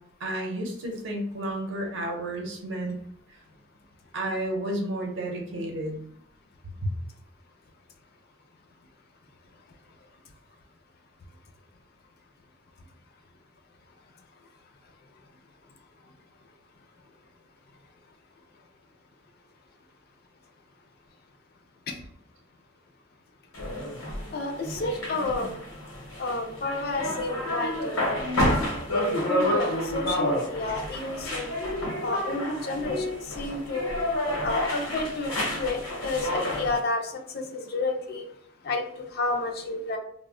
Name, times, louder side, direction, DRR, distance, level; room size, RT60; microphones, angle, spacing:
voice 1, 0.2-3.0 4.1-6.0, right 1 dB, 65° right, 1 dB, 0.6 m, -31 dB
sound 1, 23.5-36.8, left 1 dB, 85° left, 0.8 m, -30 dB
voice 2, 24.3-25.5 26.2-28.3 28.9-31.5 32.0-34.0 34.4-37.0 37.3-38.3 38.6-40.0, left 2 dB, 50° left, 4 dB, 0.4 m, -30 dB
2.1 x 2.1 x 3.6 m, 0.67 s
head